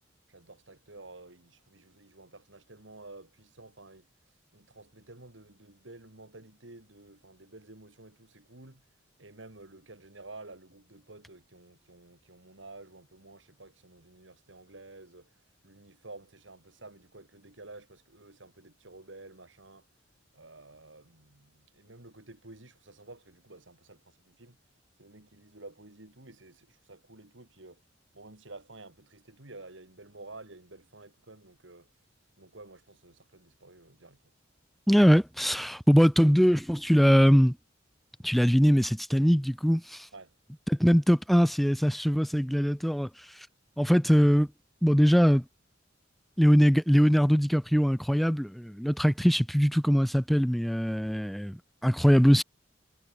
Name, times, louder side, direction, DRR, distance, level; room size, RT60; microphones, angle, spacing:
voice 1, 0.3-4.1 4.5-8.8 9.2-15.3 15.6-19.9 20.3-24.6 25.0-27.8 28.1-31.9 32.4-34.2 40.1-40.3, right 2 dB, 75° right, 2.9 m, -51 dB
voice 2, 34.9-37.6 38.2-40.1 40.7-43.5 43.8-44.5 44.8-45.4 46.4-52.4, equal, ahead, 0.5 m, -22 dB
head